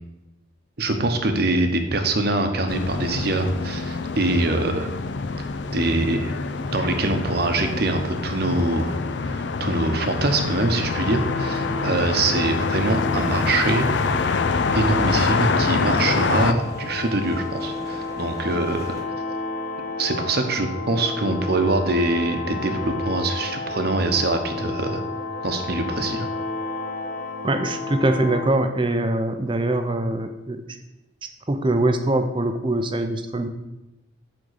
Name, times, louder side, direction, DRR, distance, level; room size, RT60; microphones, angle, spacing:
voice 1, 0.8-4.9 5.7-6.3 6.7-8.9 9.2-13.9 14.7-19.0 20.0-25.0 25.4-26.3, right 2 dB, 50° right, 6 dB, 0.9 m, -24 dB
sound 1, 2.7-16.5, left 4 dB, 65° left, 0.4 m, -26 dB
sound 2, 10.9-28.5, left 3 dB, 40° left, 0.8 m, -31 dB
sound 3, 12.2-19.0, left 1 dB, 15° left, 1.3 m, -43 dB
voice 2, 27.4-30.6 31.5-33.5, right 2 dB, 25° right, 7 dB, 0.6 m, -23 dB
8.7 x 3.7 x 6.6 m, 0.98 s
head